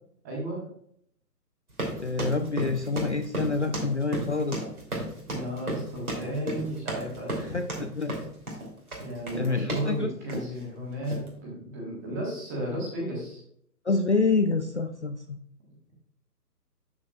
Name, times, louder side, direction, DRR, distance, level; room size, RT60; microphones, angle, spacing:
voice 1, 0.2-0.6 5.3-7.6 9.0-13.4, right 1 dB, 10° right, -2 dB, 1.3 m, -34 dB
sound 1, 1.7-9.9 10.3-10.6 11.0-11.3, right 1 dB, 60° right, 3.1 m, -34 dB
voice 2, 2.0-4.6 7.5-8.2 9.3-10.1 13.8-15.4, left 3 dB, 45° left, 7 dB, 0.5 m, -27 dB
12.0 x 5.8 x 2.3 m, 0.67 s
figure-of-eight pair, 145°, 48 cm